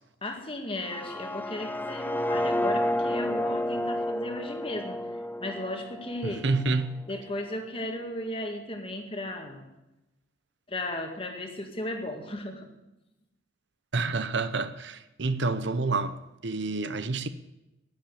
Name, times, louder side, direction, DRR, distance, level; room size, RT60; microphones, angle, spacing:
voice 1, 0.2-6.4 7.1-9.7 10.7-12.7, left 1 dB, 30° left, 1.9 m, -35 dB
sound 1, 0.7-6.7, left 1 dB, 10° left, 0.4 m, -31 dB
voice 2, 6.2-7.0 13.9-17.3, right 3 dB, 65° right, 0.8 m, -29 dB
10.5 x 10.5 x 8.5 m
head